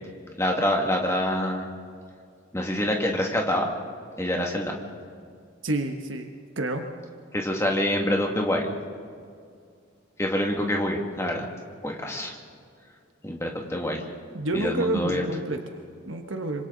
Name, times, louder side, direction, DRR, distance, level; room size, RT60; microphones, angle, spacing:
voice 1, 0.4-1.7 2.5-3.7 4.2-4.7 7.3-8.7 10.2-11.5 11.8-12.4 13.2-14.0 14.5-15.2, left 1 dB, 15° left, 1 dB, 2.1 m, -26 dB
voice 2, 5.6-6.3 6.6-6.9 14.3-16.6, right 2 dB, 70° right, 4 dB, 1.2 m, -29 dB
26.5 x 25.5 x 4.0 m, 2.2 s
head